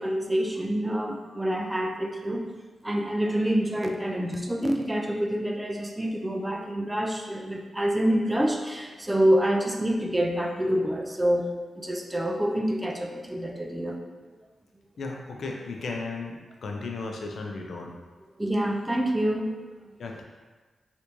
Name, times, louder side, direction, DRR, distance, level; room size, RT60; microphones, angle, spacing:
voice 1, 0.0-2.5 2.8-14.0 18.4-19.6, equal, 15° right, 2 dB, 0.4 m, -27 dB
voice 2, 15.0-17.9 20.0-20.2, left 3 dB, 70° left, 1 dB, 0.4 m, -35 dB
3.4 x 2.6 x 3.0 m, 1.3 s
cardioid pair, 90°, 0 cm